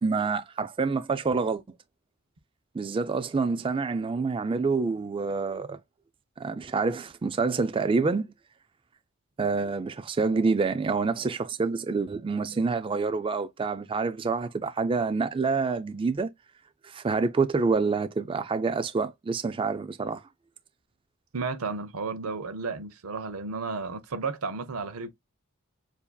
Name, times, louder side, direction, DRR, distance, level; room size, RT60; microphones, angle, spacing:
voice 1, 0.0-1.6 2.7-5.8 6.4-8.3 9.4-16.3 16.8-20.2, right 4 dB, 25° right, 0.3 m, -27 dB
voice 2, 21.3-25.1, right 4 dB, 85° right, 0.7 m, -33 dB
6.9 x 2.7 x 2.3 m
head